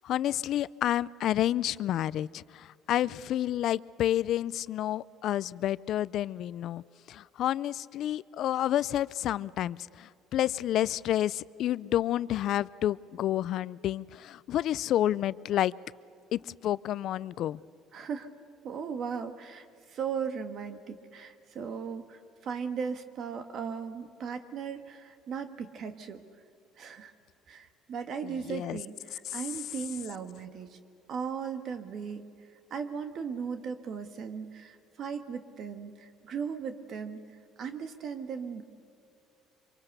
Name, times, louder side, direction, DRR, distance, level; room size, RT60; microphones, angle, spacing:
voice 1, 0.0-6.8 7.1-15.7 16.3-17.6 28.2-28.8 29.3-29.4, left 12 dB, 60° left, 19 dB, 0.5 m, -30 dB
voice 2, 17.9-18.3 18.6-26.2 26.8-27.1 27.5-30.8 31.1-32.3 32.7-37.2 37.6-38.6, right 6 dB, 55° right, 8 dB, 1.5 m, -37 dB
25.0 x 23.5 x 6.8 m, 2.6 s
cardioid pair, 110°, 0 cm